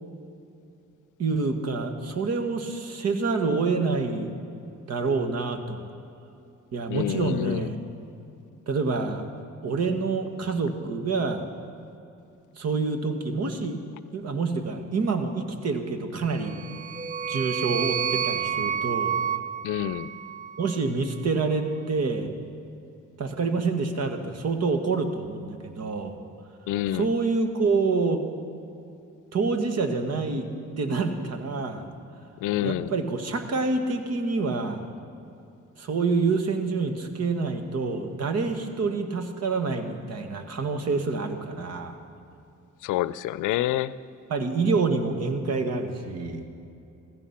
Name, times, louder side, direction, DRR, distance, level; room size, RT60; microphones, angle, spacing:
voice 1, 1.2-4.3 4.9-5.9 6.7-7.8 8.7-9.3 9.6-11.5 12.5-13.8 14.1-16.6 17.3-19.2 20.6-22.3 23.2-26.2 27.0-28.2 29.3-30.5 30.8-31.9 32.6-34.8 35.8-42.0 44.3-46.5, right 4 dB, 55° right, 6 dB, 1.7 m, -27 dB
voice 2, 6.9-7.7 19.6-20.1 26.7-27.1 32.4-32.9 42.8-43.9, left 13 dB, 85° left, 17 dB, 0.5 m, -27 dB
sound 1, 16.4-20.8, right 8 dB, 25° right, 0.5 m, -29 dB
15.0 x 15.0 x 5.9 m, 2.7 s
cardioid pair, 90°, 30 cm